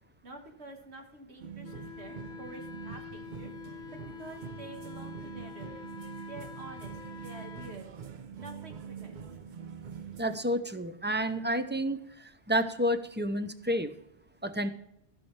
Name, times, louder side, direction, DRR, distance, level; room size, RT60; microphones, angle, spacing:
voice 1, 0.2-3.5 3.9-5.9 6.3-8.0 8.4-9.2, right 2 dB, 75° right, 2 dB, 1.8 m, -48 dB
indian band playing at Montparnasse metro station, 1.4-10.4, right 7 dB, 50° right, 0.7 m, -44 dB
Wind instrument woodwind instrument, 1.6-7.8, left 7 dB, 85° left, 1.0 m, -46 dB
voice 2, 10.2-13.9 14.4-14.7, equal, 15° right, 10 dB, 0.4 m, -30 dB
15.5 x 6.3 x 3.2 m, 0.79 s
omnidirectional pair, 1.1 m